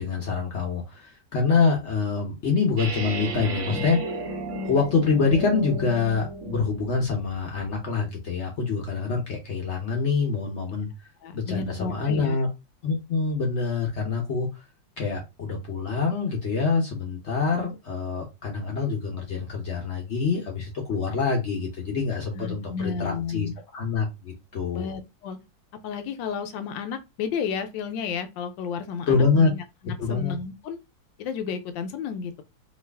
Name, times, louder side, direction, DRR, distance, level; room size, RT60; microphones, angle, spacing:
voice 1, 0.0-4.0 4.6-10.9 11.3-12.5 12.8-14.5 15.0-24.9 29.1-29.5 30.0-30.3, left 4 dB, 60° left, 0.7 m, -25 dB
sound 1, 2.8-6.8, right 2 dB, 75° right, 0.6 m, -33 dB
voice 2, 11.2-12.4 22.3-23.5 24.7-25.4 25.8-30.8 31.2-32.4, left 6 dB, 75° left, 1.2 m, -32 dB
3.0 x 2.4 x 3.3 m
omnidirectional pair, 2.1 m